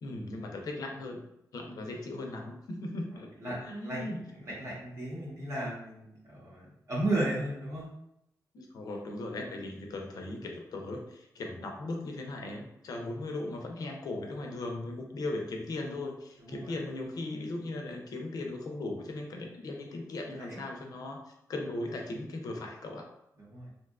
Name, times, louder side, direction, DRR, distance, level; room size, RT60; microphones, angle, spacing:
voice 1, 0.0-1.2 1.5-4.2 8.5-23.1, left 2 dB, 70° left, 2 dB, 0.5 m, -38 dB
voice 2, 3.1-3.6 3.8-4.0 4.3-7.9 16.4-16.7 20.4-20.6 23.4-23.7, right 1 dB, 50° right, -5 dB, 0.8 m, -35 dB
2.6 x 2.2 x 2.3 m, 0.81 s
wide cardioid pair, 130°, 7 cm